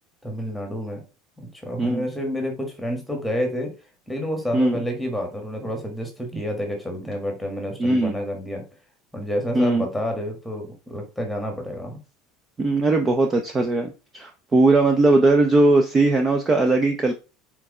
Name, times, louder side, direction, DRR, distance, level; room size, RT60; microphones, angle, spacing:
voice 1, 0.2-1.0 1.4-3.7 4.1-8.7 9.1-12.0, equal, ahead, 3 dB, 1.4 m, -29 dB
voice 2, 7.8-8.1 9.5-9.9 12.6-17.1, right 2 dB, 15° right, 4 dB, 0.6 m, -19 dB
4.7 x 4.3 x 4.7 m, 0.32 s
cardioid pair, 175°, 0 cm